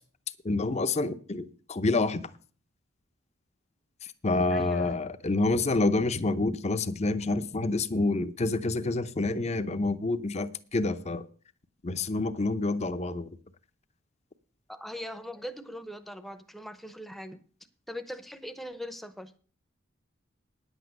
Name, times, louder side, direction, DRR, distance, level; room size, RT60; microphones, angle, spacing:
voice 1, 0.4-2.3 4.2-11.2 11.8-13.3, left 2 dB, 35° left, 0.7 m, -28 dB
voice 2, 4.5-4.9 14.7-17.4 17.9-19.3, equal, ahead, 0.8 m, -40 dB
10.0 x 8.1 x 6.4 m
head